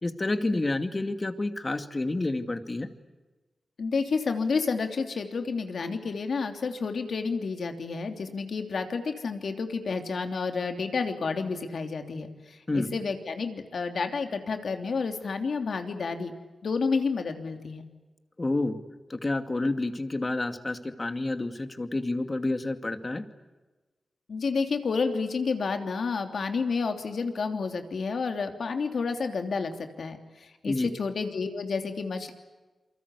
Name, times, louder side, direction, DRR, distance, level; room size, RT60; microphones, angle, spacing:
voice 1, 0.0-2.9 12.7-12.9 18.4-18.8 19.1-23.2 30.6-30.9, left 2 dB, 30° left, 8 dB, 2.4 m, -29 dB
voice 2, 3.8-16.3 16.6-17.8 24.3-32.3, left 4 dB, 70° left, 5 dB, 3.1 m, -30 dB
28.5 x 24.5 x 8.4 m, 1.2 s
cardioid pair, 60°, 0 cm